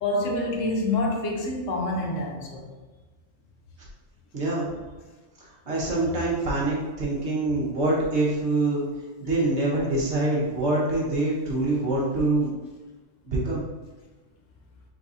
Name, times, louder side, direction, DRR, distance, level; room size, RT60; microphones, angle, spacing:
voice 1, 0.0-2.7, left 2 dB, 75° left, 1 dB, 1.1 m, -27 dB
voice 2, 4.3-4.7 5.4-8.8 9.2-12.5 13.2-13.6, right 2 dB, 60° right, -6 dB, 1.5 m, -25 dB
4.3 x 4.0 x 2.6 m, 1.3 s
omnidirectional pair, 1.3 m